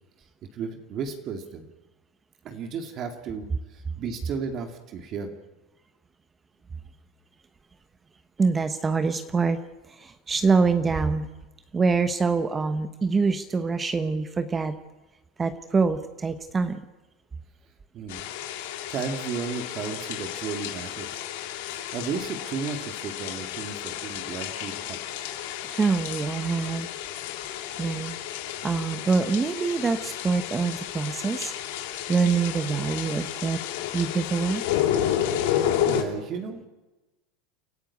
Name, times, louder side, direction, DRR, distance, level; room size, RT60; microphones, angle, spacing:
voice 1, 0.5-1.7 2.4-5.3 17.9-18.3 18.9-21.3 21.7-25.0 35.8-36.7, right 6 dB, 45° right, 5 dB, 2.4 m, -34 dB
voice 2, 8.4-9.6 9.9-11.3 11.7-14.8 15.4-16.8 25.7-26.9 27.8-28.2 28.6-31.5 32.1-33.6 33.9-34.6, right 4 dB, 20° right, 10 dB, 1.1 m, -25 dB
sound 1, 18.1-36.0, left 10 dB, 75° left, 3.1 m, -31 dB
30.0 x 12.0 x 8.5 m, 1.1 s
supercardioid pair, 120°, 0 cm